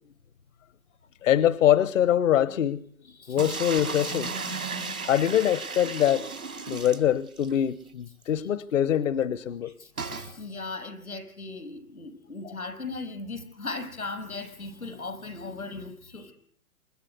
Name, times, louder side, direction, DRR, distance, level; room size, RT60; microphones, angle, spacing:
voice 1, 1.2-2.8 3.3-4.3 5.1-6.3 6.7-9.7 12.4-12.6, left 10 dB, 65° left, 1.1 m, -24 dB
sound 1, 3.4-7.6 7.9-8.0 8.2-8.3 10.0-10.3, right 4 dB, 90° right, 4.0 m, -35 dB
voice 2, 10.0-16.3, left 3 dB, 85° left, 7.0 m, -37 dB
27.5 x 23.5 x 8.2 m
figure-of-eight pair, 115°, 42 cm